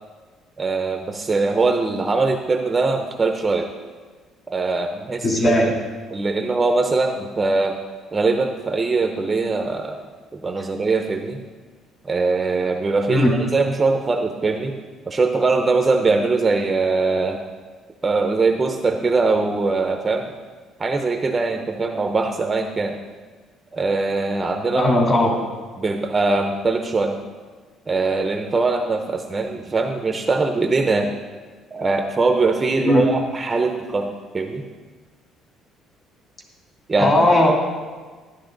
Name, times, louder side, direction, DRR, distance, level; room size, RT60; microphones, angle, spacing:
voice 1, 0.6-3.7 4.5-5.7 6.1-7.8 8.1-10.1 10.3-11.4 12.0-14.8 15.1-17.4 18.0-20.3 20.8-23.0 23.7-24.9 25.4-25.5 25.8-27.2 27.9-31.1 31.7-34.6 36.9-37.3, right 3 dB, 20° right, 5 dB, 0.6 m, -21 dB
voice 2, 5.2-5.7 13.1-13.3 24.7-25.3 32.8-33.1 37.0-37.5, left 1 dB, 30° left, -1 dB, 2.6 m, -17 dB
12.0 x 11.0 x 3.8 m, 1.4 s
cardioid pair, 155°, 0 cm